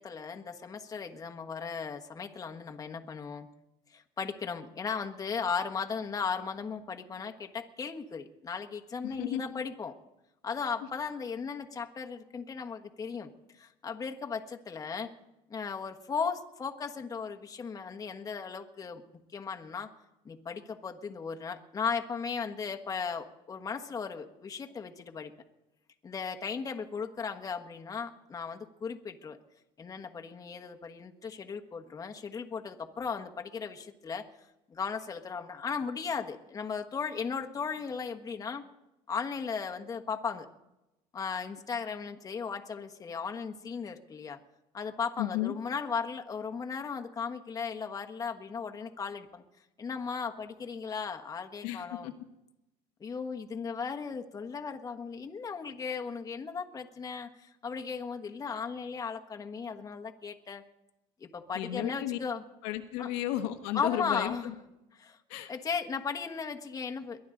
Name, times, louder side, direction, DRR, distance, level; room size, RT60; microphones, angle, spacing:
voice 1, 0.0-3.5 3.9-9.9 10.4-15.1 15.5-19.0 19.3-19.9 20.2-25.3 26.0-29.4 29.8-34.3 34.7-38.6 39.1-40.5 41.1-44.4 44.7-49.4 49.8-52.1 53.0-60.6 61.2-62.4 63.0-63.1 63.7-64.5 65.0-65.2 65.5-67.3, left 5 dB, 25° left, 4 dB, 1.3 m, -36 dB
voice 2, 9.0-9.4 45.2-45.5 51.6-52.1 61.5-62.2 62.6-64.5 65.3-65.5, left 13 dB, 85° left, 7 dB, 1.3 m, -33 dB
22.5 x 12.0 x 3.9 m, 0.92 s
supercardioid pair, 105°, 14 cm